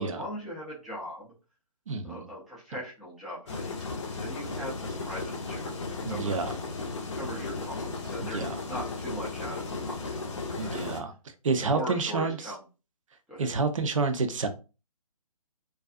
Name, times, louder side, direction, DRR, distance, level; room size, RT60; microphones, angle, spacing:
voice 1, 0.0-1.3 2.0-6.6 7.2-10.2 10.5-10.8 11.7-12.6 13.3-13.5, equal, ahead, 0.4 m, -40 dB
voice 2, 1.9-2.3 6.0-6.5 8.3-8.6 10.6-11.1 11.4-12.4 13.4-14.5, right 4 dB, 55° right, 0.5 m, -29 dB
sound 1, 3.5-11.0, left 3 dB, 50° left, 0.6 m, -35 dB
2.4 x 2.3 x 2.5 m
figure-of-eight pair, 140°, 20 cm